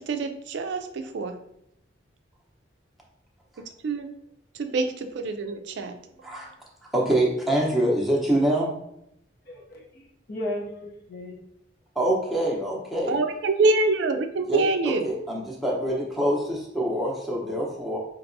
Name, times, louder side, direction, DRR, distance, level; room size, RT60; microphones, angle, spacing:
voice 1, 0.0-1.3 3.8-4.1 4.6-5.9 13.1-15.1, right 3 dB, 65° right, 7 dB, 0.4 m, -25 dB
voice 2, 6.9-8.7 11.9-13.2 14.5-18.0, right 1 dB, ahead, -4 dB, 0.7 m, -25 dB
voice 3, 9.5-11.4 17.5-17.7, left 1 dB, 55° left, -1 dB, 0.7 m, -36 dB
4.5 x 2.9 x 2.6 m, 0.78 s
head